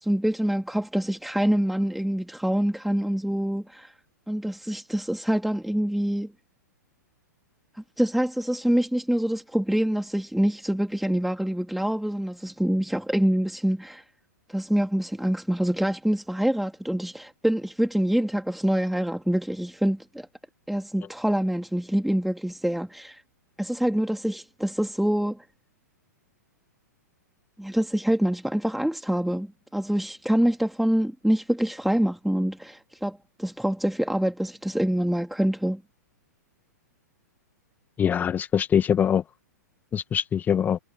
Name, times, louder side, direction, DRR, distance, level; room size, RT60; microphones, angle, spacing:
voice 1, 0.0-3.9 4.3-6.3 8.0-14.0 14.5-20.3 20.7-23.2 23.6-25.4 27.6-35.8, equal, ahead, 2.8 m, -25 dB
voice 2, 38.0-39.2 39.9-40.8, left 8 dB, 20° left, 1.9 m, -23 dB
figure-of-eight pair, 110°, 10 cm